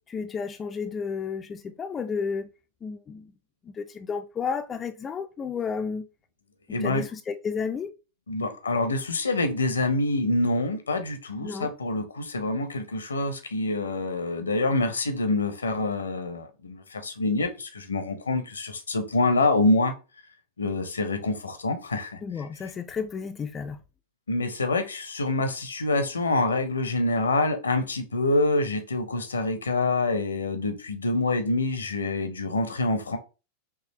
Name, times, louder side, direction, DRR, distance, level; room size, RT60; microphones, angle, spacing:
voice 1, 0.1-2.5 2.8-3.3 3.7-6.1 6.7-7.9 11.4-11.7 22.2-23.8, left 5 dB, 20° left, 0.4 m, -32 dB
voice 2, 6.7-7.0 8.3-19.9 20.6-22.5 24.3-33.2, left 2 dB, 75° left, 0.8 m, -26 dB
4.8 x 3.1 x 3.0 m
figure-of-eight pair, 90°, 0 cm